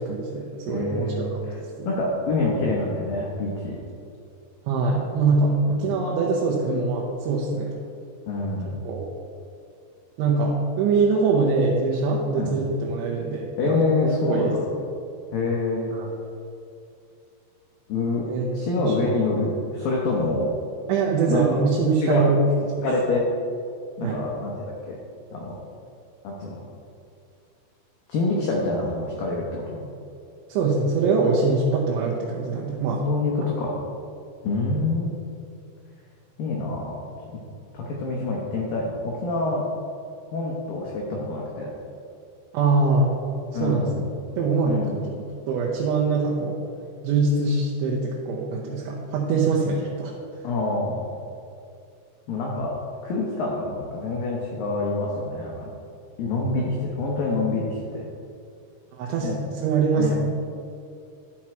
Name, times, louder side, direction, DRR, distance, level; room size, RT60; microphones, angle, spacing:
voice 1, 0.0-1.3 1.8-1.9 4.7-7.8 8.8-9.1 10.2-14.5 15.9-16.1 18.2-18.9 20.9-22.4 22.7-22.8 24.0-24.3 30.5-33.0 42.5-43.1 43.5-44.0 44.4-45.1 45.5-46.6 47.0-50.1 59.0-60.2, right 4 dB, 80° right, -3 dB, 3.1 m, -23 dB
voice 2, 0.7-1.6 1.9-3.8 5.7-5.8 8.3-8.8 12.4-12.5 13.6-14.6 15.3-15.9 17.9-18.2 18.5-20.5 21.3-21.4 21.9-22.3 22.8-23.2 24.0-25.0 25.3-25.6 26.2-26.6 28.1-29.8 33.0-33.8 34.4-35.2 36.4-37.0 37.3-37.4 37.7-39.6 40.3-41.7 43.5-43.9 44.7-45.0 50.4-51.1 52.3-52.7 53.0-55.7 56.2-58.1 59.2-59.4 60.0-60.2, left 3 dB, 85° left, -2 dB, 2.0 m, -26 dB
11.0 x 6.1 x 4.4 m, 2.5 s
omnidirectional pair, 5.4 m